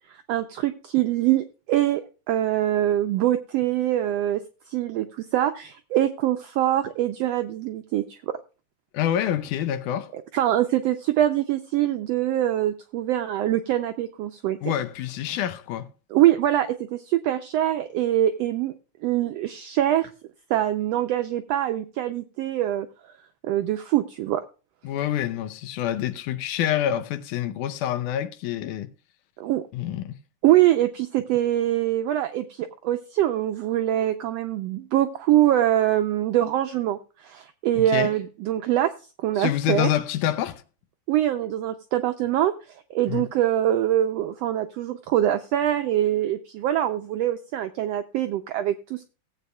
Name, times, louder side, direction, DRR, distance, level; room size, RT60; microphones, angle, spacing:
voice 1, 0.1-4.4 4.7-8.4 10.1-14.6 16.1-18.7 19.0-20.1 20.5-22.9 23.4-24.4 29.4-29.6 30.4-38.9 39.2-39.9 41.1-49.1, right 13 dB, 85° right, 1.4 m, -24 dB
voice 2, 8.9-10.1 14.6-15.9 24.8-28.9 29.7-30.2 37.8-38.1 39.4-40.6 43.1-43.2, left 11 dB, 80° left, 2.3 m, -27 dB
17.5 x 8.2 x 2.3 m
omnidirectional pair, 3.5 m